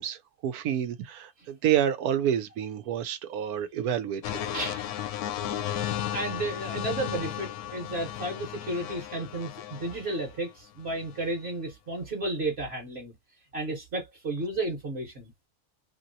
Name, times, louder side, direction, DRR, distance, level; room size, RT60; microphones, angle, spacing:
voice 1, 0.0-4.4, right 10 dB, 90° right, 1.1 m, -29 dB
sound 1, 4.2-10.3 11.0-11.3, left 11 dB, 90° left, 1.1 m, -34 dB
voice 2, 4.5-5.1 6.1-13.1 13.5-15.3, right 2 dB, 50° right, 1.2 m, -33 dB
2.9 x 2.8 x 2.6 m
omnidirectional pair, 1.5 m